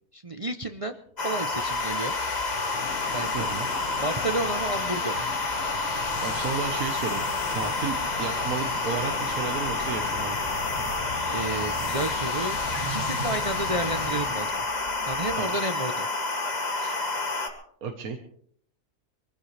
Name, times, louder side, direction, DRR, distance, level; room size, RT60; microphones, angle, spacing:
voice 1, 0.1-2.2 3.1-3.5 4.0-5.3 11.3-12.6 12.9-14.6 15.1-16.1, right 2 dB, 40° right, 6 dB, 0.4 m, -31 dB
sound 1, 1.2-17.5, left 3 dB, 30° left, 1.5 m, -29 dB
sound 2, 1.3-15.8, left 8 dB, 55° left, 0.9 m, -38 dB
voice 2, 3.3-3.7 6.2-10.4 15.4-15.5 16.8-16.9 17.8-18.2, right 5 dB, 65° right, 5 dB, 1.6 m, -33 dB
sound 3, 5.9-14.2, right 1 dB, 80° left, 4.6 m, -41 dB
23.0 x 15.0 x 3.3 m, 0.63 s
omnidirectional pair, 1.6 m